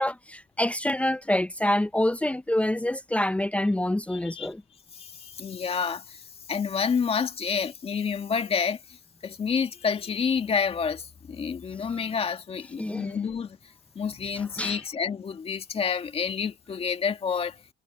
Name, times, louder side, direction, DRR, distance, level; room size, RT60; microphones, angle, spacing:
voice 1, 0.0-4.6 11.9-12.0 12.8-13.1 14.6-14.8, left 1 dB, 10° left, 0.8 m, -26 dB
voice 2, 4.1-4.5 4.9-8.8 9.2-13.6 14.0-17.6, left 6 dB, 35° left, 2.0 m, -29 dB
cardioid pair, 110°, 17 cm